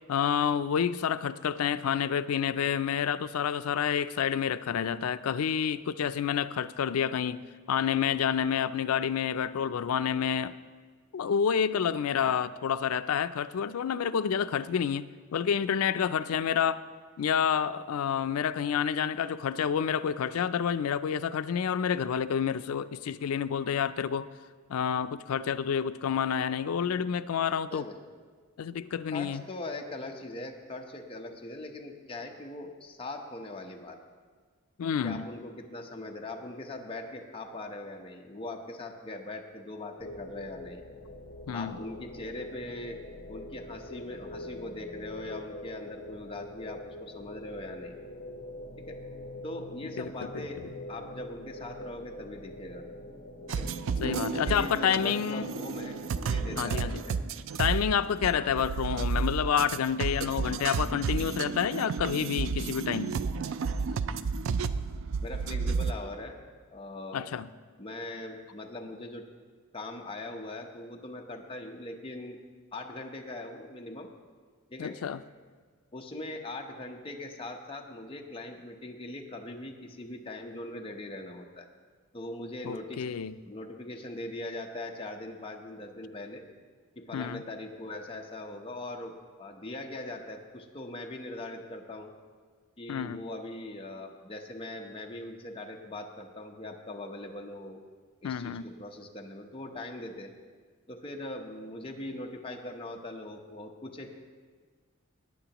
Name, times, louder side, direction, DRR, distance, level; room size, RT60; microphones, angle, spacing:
voice 1, 0.1-7.4 7.7-10.5 11.1-15.1 15.3-16.8 17.2-24.3 24.7-27.9 28.6-29.4 34.8-35.3 41.5-41.8 50.0-50.4 54.0-55.5 56.6-57.0 57.6-63.2 67.1-67.5 74.8-75.2 82.6-83.4 87.1-87.4 92.9-93.2 98.2-98.6, left 7 dB, 85° left, 14 dB, 0.4 m, -29 dB
voice 2, 29.1-34.0 35.0-40.8 41.5-43.0 43.3-47.9 48.9-49.0 49.4-50.6 50.9-52.8 53.5-53.7 54.0-57.2 58.4-58.7 65.2-66.5 66.7-67.3 67.8-69.2 69.7-72.4 72.7-74.1 74.7-75.0 75.9-81.7 82.1-83.0 83.4-86.4 87.0-89.1 89.4-92.1 92.8-97.8 98.2-100.3 100.9-104.1, left 2 dB, 25° left, 1 dB, 0.8 m, -41 dB
sound 1, 40.0-57.2, left 1 dB, 55° left, 1.1 m, -44 dB
sound 2, 53.5-65.9, right 5 dB, 60° right, 0.4 m, -32 dB
18.5 x 9.0 x 3.0 m, 1.6 s
head